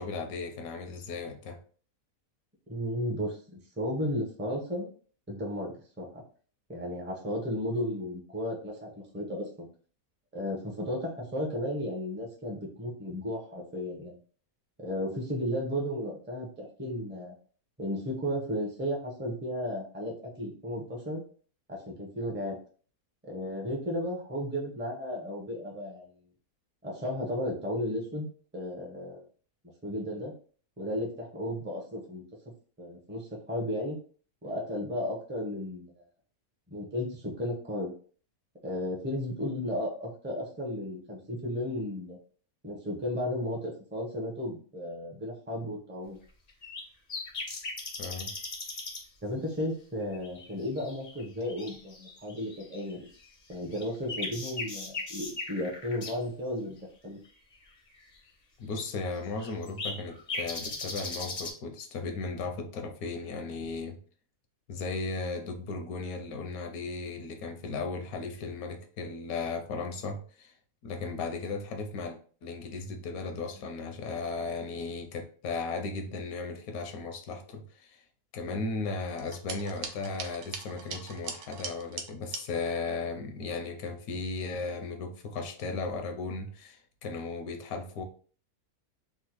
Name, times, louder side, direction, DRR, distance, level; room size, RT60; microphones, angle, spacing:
voice 1, 0.0-1.6 48.0-48.3 58.6-64.0 64.7-70.5 70.8-78.0 78.3-88.0, left 4 dB, 80° left, 1.0 m, -36 dB
voice 2, 2.7-4.9 5.3-6.2 6.7-9.7 10.3-14.2 14.8-17.3 17.8-21.2 21.7-22.6 23.2-26.1 26.8-28.3 28.5-29.2 29.8-30.3 30.8-32.2 32.8-34.0 34.4-36.0 36.7-37.9 38.6-42.2 42.6-46.2 49.2-53.0 53.5-56.8 57.0-57.2, left 1 dB, 15° right, 0.4 m, -34 dB
sound 1, 46.5-46.8 47.1-49.0 49.6-49.7 50.1-53.1 53.5-56.1 58.1-58.2 58.8-58.9 59.4-61.5, left 3 dB, 45° left, 0.5 m, -38 dB
sound 2, 79.2-82.4, right 5 dB, 70° right, 0.9 m, -40 dB
3.5 x 2.2 x 2.9 m
omnidirectional pair, 1.6 m